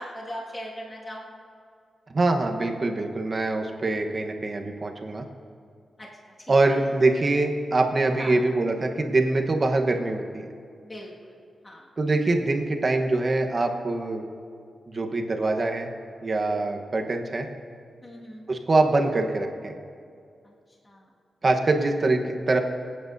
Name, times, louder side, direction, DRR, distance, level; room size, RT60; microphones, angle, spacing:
voice 1, 0.0-1.3 6.0-6.1 6.5-6.8 8.2-8.4 10.8-11.1 11.6-11.9 18.0-18.5 20.5-20.6 20.8-21.0, equal, 25° left, -4 dB, 1.9 m, -39 dB
voice 2, 2.1-5.2 6.5-10.5 12.0-14.2 14.9-15.9 16.2-17.5 18.5-19.7 21.4-22.6, right 2 dB, 40° right, 3 dB, 1.1 m, -24 dB
26.5 x 8.8 x 2.7 m, 2.3 s
cardioid pair, 90°, 0 cm